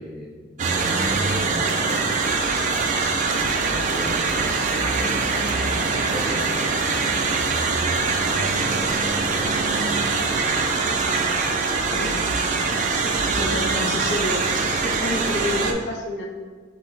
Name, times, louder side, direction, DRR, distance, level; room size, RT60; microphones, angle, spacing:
voice 1, 0.0-2.9 3.4-5.1 5.5-7.3 8.1-11.0, equal, ahead, -5 dB, 0.7 m, -38 dB
sound 1, 0.6-15.7, right 4 dB, 45° right, 0.4 m, -23 dB
voice 2, 11.9-12.3 13.4-16.3, left 2 dB, 75° left, 1 dB, 0.6 m, -29 dB
5.6 x 2.1 x 3.9 m, 1.5 s
head